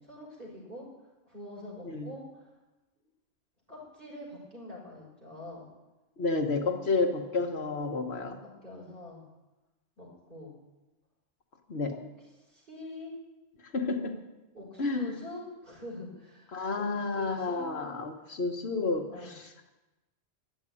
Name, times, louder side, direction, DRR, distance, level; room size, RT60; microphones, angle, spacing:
voice 1, 0.0-0.9 1.3-2.5 3.7-5.7 8.4-9.2 10.0-10.5 11.9-12.0 12.4-13.1 14.5-17.7 19.1-19.3, left 1 dB, 45° right, -5 dB, 6.3 m, -45 dB
voice 2, 6.2-8.4 11.7-11.9 13.7-14.2 14.8-15.1 16.5-19.1, left 3 dB, 65° left, 4 dB, 1.4 m, -30 dB
12.5 x 8.3 x 9.8 m, 1.1 s
omnidirectional pair, 1.2 m